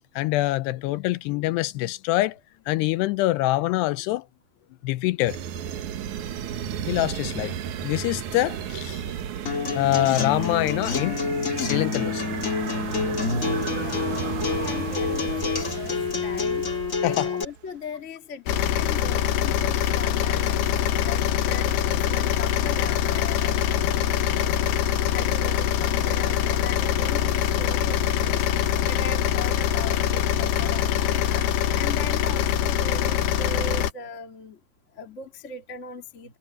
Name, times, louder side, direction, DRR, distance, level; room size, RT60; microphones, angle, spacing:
voice 1, 0.2-2.4 2.7-4.2 4.8-5.4 6.9-9.0 9.8-11.2 11.6-12.2 17.0-17.3, left 17 dB, 90° left, 2.8 m, -25 dB
sound 1, 5.3-17.6, right 9 dB, 65° right, 2.1 m, -33 dB
Acoustic guitar, 9.4-17.4, left 5 dB, 45° left, 1.0 m, -28 dB
voice 2, 13.0-16.6 17.0-24.5 25.1-28.5 28.8-34.6 34.9-36.4, left 3 dB, 25° left, 1.7 m, -39 dB
sound 2, 18.5-33.9, left 11 dB, 75° left, 3.0 m, -24 dB
omnidirectional pair, 4.8 m